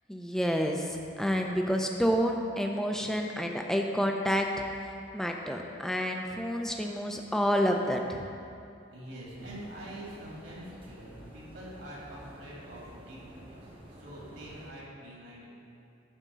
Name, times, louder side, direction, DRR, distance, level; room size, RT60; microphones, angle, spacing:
voice 1, 0.1-4.5 5.1-8.2, equal, ahead, 2 dB, 0.5 m, -29 dB
voice 2, 8.9-15.5, right 1 dB, 60° right, -5 dB, 2.1 m, -45 dB
sound 1, 9.4-14.7, right 1 dB, 25° right, 1.0 m, -50 dB
10.0 x 3.7 x 6.7 m, 2.6 s
head